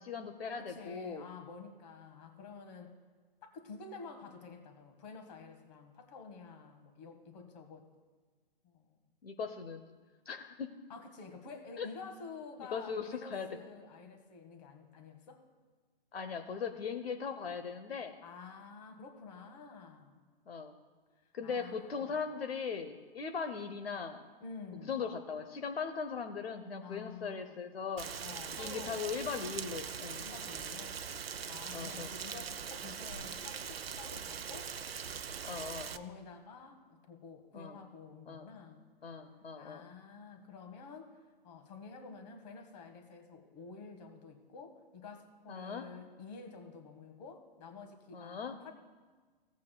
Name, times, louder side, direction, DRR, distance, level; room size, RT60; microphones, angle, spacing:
voice 1, 0.0-1.2 9.2-9.8 10.2-10.7 11.8-11.9 12.7-13.5 16.1-18.2 20.5-20.7 21.3-24.2 24.8-28.1 28.6-30.2 31.7-32.1 35.4-35.9 37.5-37.8 38.3-38.5 39.0-39.9 45.5-45.8 48.1-48.6, left 6 dB, 75° left, 6 dB, 0.9 m, -39 dB
voice 2, 0.6-2.9 3.4-7.9 8.6-8.8 10.9-15.5 18.2-20.2 21.4-22.2 24.4-25.0 26.8-27.6 28.2-29.0 30.2-34.7 35.9-38.8 39.6-41.2 41.4-48.7, left 4 dB, 40° left, 5 dB, 1.7 m, -50 dB
Rain, 28.0-36.0, right 7 dB, 80° right, 0.7 m, -42 dB
16.5 x 8.2 x 2.3 m, 1.4 s
hypercardioid pair, 130°, 30 cm